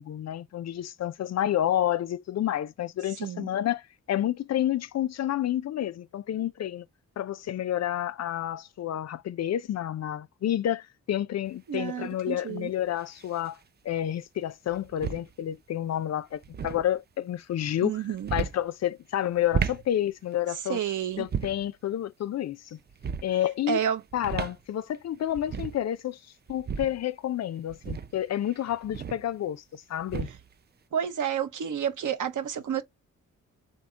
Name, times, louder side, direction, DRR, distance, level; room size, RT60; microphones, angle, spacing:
voice 1, 0.0-3.8 4.1-6.9 7.2-13.6 13.8-20.8 21.2-22.8 23.2-23.8 24.1-26.2 26.5-30.3, left 11 dB, 55° left, 0.4 m, -29 dB
sound 1, 11.5-11.6 13.0-13.5 14.7-15.3 16.3-16.8 18.1-18.6 19.3-19.9 21.2-21.7 22.9-23.3 24.1-24.6 24.9-25.0 25.3-25.8 26.5-27.0 27.7-29.3 30.0-30.5, right 7 dB, 30° right, 0.4 m, -34 dB
voice 2, 11.7-12.7 17.8-18.3 20.7-21.3 23.7-24.0 30.9-32.8, right 9 dB, 70° right, 0.9 m, -30 dB
3.5 x 2.8 x 3.9 m
cardioid pair, 60°, 32 cm